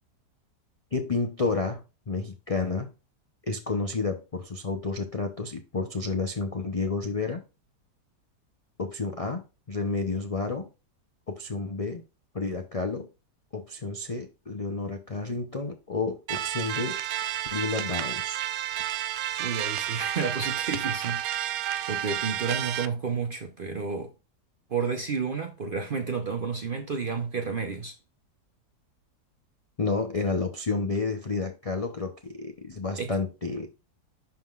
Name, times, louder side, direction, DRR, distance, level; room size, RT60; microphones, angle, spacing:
voice 1, 0.9-2.9 3.4-7.4 8.8-10.7 11.3-12.0 12.3-13.1 13.5-17.0 17.5-18.4 29.8-33.7, left 3 dB, 50° left, 0.4 m, -30 dB
sound 1, 16.3-22.9, right 11 dB, 70° right, 0.9 m, -31 dB
voice 2, 19.4-24.1 24.7-27.9 32.9-33.1, right 5 dB, 50° right, 0.6 m, -31 dB
11.5 x 3.8 x 2.4 m
omnidirectional pair, 1.8 m